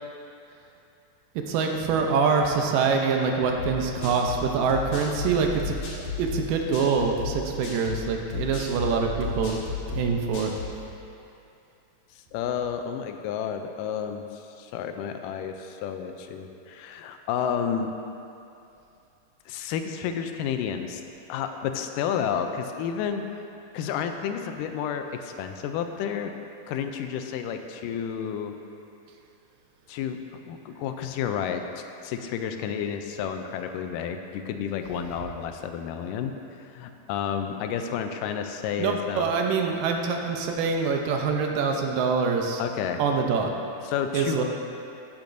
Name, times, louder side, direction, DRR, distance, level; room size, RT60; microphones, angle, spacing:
voice 1, 1.5-5.8 6.2-9.6 9.9-10.5 38.8-42.6 43.0-43.5 44.1-44.4, right 5 dB, 85° right, 2 dB, 2.5 m, -25 dB
sound 1, 3.6-10.8, left 4 dB, 55° left, 2.6 m, -34 dB
voice 2, 12.3-17.9 19.5-21.0 21.3-23.2 23.7-26.3 26.7-28.5 29.9-30.2 30.5-36.3 36.7-39.3 42.6-43.0 43.8-44.4, left 8 dB, 85° left, 6 dB, 2.2 m, -31 dB
14.0 x 8.7 x 2.6 m, 2.7 s
omnidirectional pair, 3.8 m